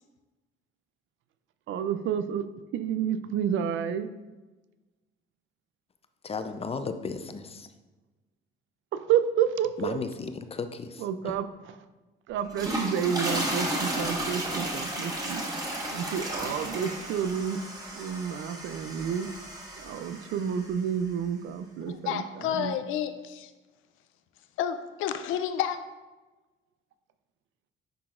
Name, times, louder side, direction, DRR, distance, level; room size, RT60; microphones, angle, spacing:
voice 1, 1.7-2.4 2.7-4.1 8.9-10.0 11.0-11.5 12.3-15.4 15.9-17.6 17.9-19.3 19.8-22.7, right 8 dB, 80° right, 12 dB, 0.4 m, -30 dB
voice 2, 6.2-7.7 9.8-11.4, left 4 dB, 30° left, 9 dB, 0.5 m, -35 dB
sound 1, 12.4-20.7, right 1 dB, 20° right, 1.5 m, -33 dB
voice 3, 21.9-23.5 24.6-25.8, left 9 dB, 90° left, 10 dB, 0.4 m, -30 dB
10.0 x 3.9 x 2.5 m, 1.2 s
cardioid pair, 90°, 20 cm